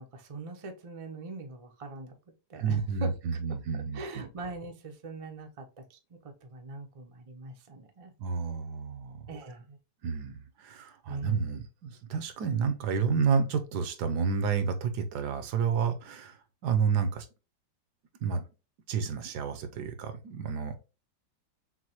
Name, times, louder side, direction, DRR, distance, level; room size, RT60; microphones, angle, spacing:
voice 1, 0.0-2.1 2.5-3.1 3.7-8.1 9.3-9.8 11.1-11.5, right 3 dB, 50° right, 0.4 m, -42 dB
voice 2, 2.5-4.2 8.2-9.3 10.0-17.3 18.2-18.4 18.9-20.8, right 6 dB, 75° right, 1.2 m, -30 dB
6.1 x 2.1 x 2.9 m
omnidirectional pair, 1.8 m